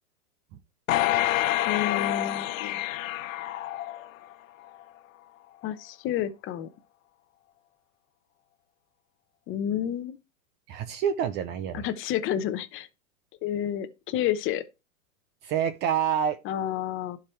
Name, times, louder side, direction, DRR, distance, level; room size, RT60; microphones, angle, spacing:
sound 1, 0.9-4.3 4.8-4.9, left 14 dB, 65° left, 0.9 m, -27 dB
voice 1, 1.7-2.8 5.6-6.7 9.5-10.2 11.7-12.9 13.4-14.6 16.4-17.2, left 10 dB, 30° left, 0.9 m, -30 dB
voice 2, 10.7-11.8 15.4-16.4, right 8 dB, 25° right, 0.5 m, -27 dB
11.5 x 4.9 x 4.5 m
hypercardioid pair, 130°, 43 cm